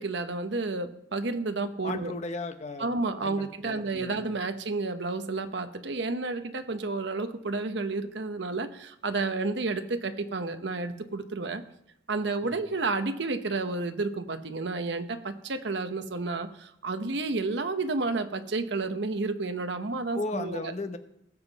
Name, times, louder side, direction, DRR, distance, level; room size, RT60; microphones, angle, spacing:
voice 1, 0.0-2.1 2.8-11.6 12.1-20.7, right 3 dB, 65° right, 8 dB, 0.9 m, -31 dB
voice 2, 1.8-2.9 3.2-4.3 12.4-12.6 20.1-21.0, left 2 dB, 35° left, 8 dB, 0.8 m, -36 dB
19.0 x 7.3 x 4.0 m, 0.77 s
head